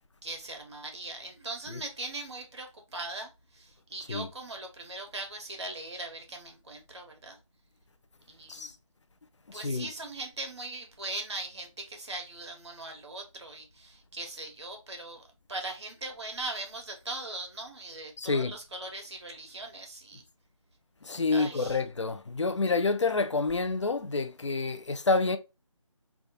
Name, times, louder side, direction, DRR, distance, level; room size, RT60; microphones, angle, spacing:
voice 1, 0.2-7.4 8.3-8.7 9.5-15.2 15.5-20.2 21.3-21.8, right 2 dB, 55° right, 1.5 m, -40 dB
voice 2, 9.5-9.9 18.2-18.6 21.0-25.4, left 3 dB, 55° left, 0.6 m, -28 dB
3.5 x 2.5 x 3.9 m
figure-of-eight pair, 160°, 18 cm